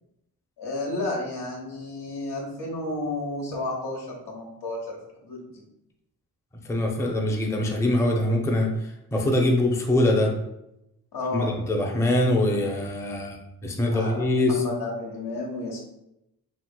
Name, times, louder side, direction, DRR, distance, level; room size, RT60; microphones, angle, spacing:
voice 1, 0.6-4.8 5.2-5.5 11.1-11.5 13.9-15.8, left 2 dB, 75° left, -3 dB, 1.0 m, -32 dB
voice 2, 6.7-8.7 9.1-10.3 11.3-14.6, left 1 dB, 5° left, 1 dB, 0.5 m, -23 dB
2.9 x 2.8 x 2.2 m, 0.85 s
supercardioid pair, 45°, 41 cm